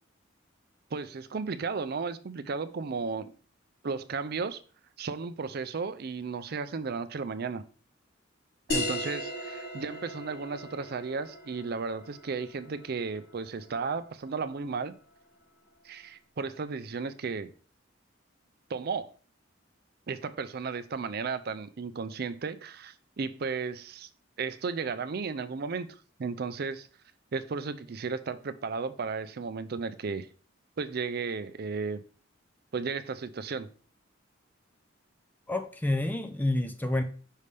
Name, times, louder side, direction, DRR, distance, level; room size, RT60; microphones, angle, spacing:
voice 1, 0.9-3.3 3.8-4.6 5.0-7.6 8.7-14.9 15.8-17.5 18.7-19.1 20.1-24.1 24.4-26.9 27.3-30.3 30.8-32.0 32.7-33.7, right 4 dB, 50° right, 0.5 m, -34 dB
sound 1, 8.7-13.8, left 1 dB, 50° left, 1.2 m, -37 dB
voice 2, 35.5-37.0, left 1 dB, 10° left, 0.4 m, -28 dB
5.5 x 3.3 x 5.2 m
head